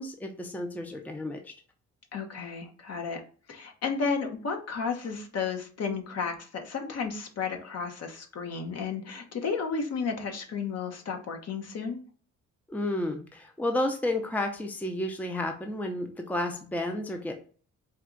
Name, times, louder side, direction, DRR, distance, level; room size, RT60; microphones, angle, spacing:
voice 1, 0.0-1.5 12.7-17.3, left 1 dB, 5° left, 4 dB, 0.6 m, -31 dB
voice 2, 2.1-3.2 3.5-12.0, left 5 dB, 55° left, 4 dB, 1.0 m, -33 dB
4.5 x 2.4 x 3.8 m, 0.42 s
cardioid pair, 90°, 30 cm